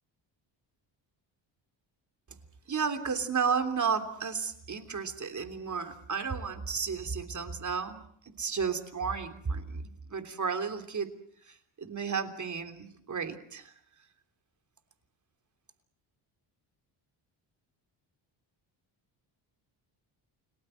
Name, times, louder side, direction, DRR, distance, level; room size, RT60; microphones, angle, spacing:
voice 1, 2.7-11.1 11.4-13.7, right 6 dB, 35° right, 7 dB, 3.2 m, -33 dB
29.5 x 19.0 x 7.7 m, 0.66 s
cardioid pair, 85°, 48 cm